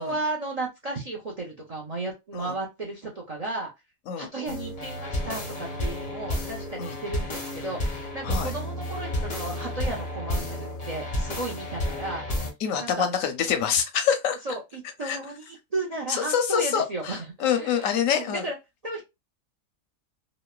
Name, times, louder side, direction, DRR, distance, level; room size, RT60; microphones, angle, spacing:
voice 1, 0.0-3.7 4.2-12.5 12.8-13.1 14.5-18.6 18.8-19.0, right 2 dB, 50° right, 0.4 m, -34 dB
sound 1, 4.5-12.5, left 1 dB, 40° left, 0.6 m, -31 dB
voice 2, 12.6-14.4 15.0-15.2 16.1-18.5, left 8 dB, 85° left, 1.0 m, -26 dB
3.0 x 2.0 x 2.2 m
omnidirectional pair, 1.4 m